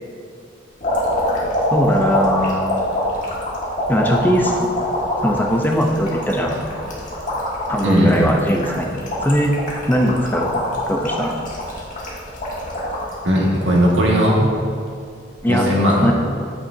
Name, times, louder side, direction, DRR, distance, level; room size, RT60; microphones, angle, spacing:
sound 1, 0.8-13.1 13.6-14.3 15.3-15.5, left 1 dB, 45° left, 1.7 m, -24 dB
voice 1, 1.7-2.8 3.9-4.6 5.2-6.6 7.7-9.6 9.9-10.5 10.9-11.3 15.4-15.7 16.0-16.1, equal, 10° left, 1 dB, 0.6 m, -19 dB
voice 2, 7.8-8.2 13.2-14.5 15.5-16.1, equal, 75° right, -3 dB, 1.8 m, -17 dB
8.7 x 8.5 x 2.7 m, 2.3 s
head